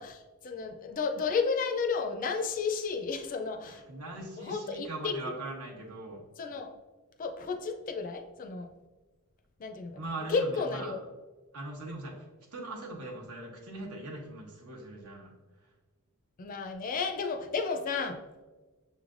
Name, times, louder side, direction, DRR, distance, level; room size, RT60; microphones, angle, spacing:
voice 1, 0.0-3.8 4.4-5.2 6.4-6.7 7.2-8.7 9.6-11.0 16.4-18.2, left 5 dB, 40° left, 6 dB, 0.4 m, -32 dB
voice 2, 3.6-6.2 10.0-11.0 11.5-12.2 12.5-15.3, right 2 dB, 85° right, 0 dB, 1.0 m, -40 dB
6.5 x 3.2 x 2.5 m, 1.2 s
head